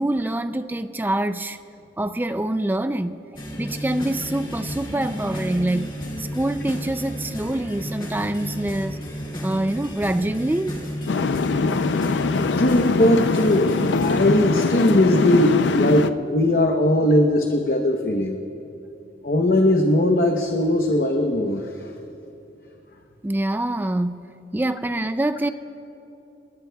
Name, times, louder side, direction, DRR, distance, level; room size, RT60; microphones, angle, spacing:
voice 1, 0.0-1.6 2.0-3.2 3.6-5.9 6.2-9.0 9.4-10.8 23.2-25.5, right 1 dB, 10° right, 0.3 m, -25 dB
sound 1, 3.3-14.4, equal, 25° left, 2.3 m, -32 dB
sound 2, 11.1-16.1, left 4 dB, 75° left, 0.5 m, -22 dB
voice 2, 12.6-18.4 19.2-21.7, left 1 dB, 50° left, 0.9 m, -19 dB
28.0 x 20.0 x 2.3 m
head